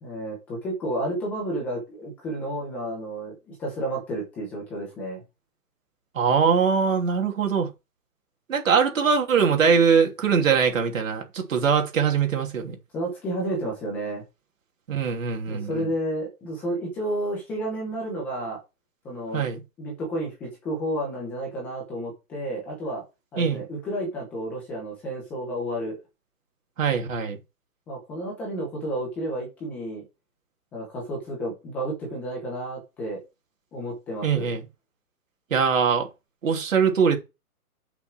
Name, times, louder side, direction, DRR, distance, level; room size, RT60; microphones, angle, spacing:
voice 1, 0.0-5.2 12.9-14.2 15.5-18.6 19.0-19.5 19.8-23.0 23.3-26.0 27.9-30.0 30.7-33.2 33.7-34.5, right 1 dB, 5° left, 0.8 m, -31 dB
voice 2, 6.1-7.7 8.5-12.8 14.9-15.8 19.3-19.6 23.4-23.6 26.8-27.4 34.2-34.6 35.5-36.1 36.4-37.2, right 6 dB, 55° right, 3.1 m, -22 dB
8.5 x 6.1 x 4.5 m
hypercardioid pair, 170°, 46 cm